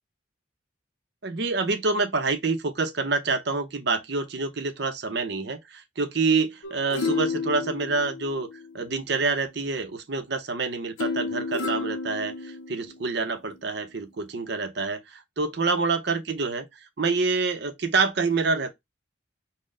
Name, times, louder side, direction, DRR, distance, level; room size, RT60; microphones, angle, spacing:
voice 1, 1.2-8.5 8.7-16.6 17.0-18.7, right 4 dB, 55° right, 0.6 m, -27 dB
sound 1, 6.6-9.0 11.0-13.0 13.5-13.6, left 4 dB, 70° left, 0.5 m, -31 dB
4.2 x 2.1 x 3.6 m
head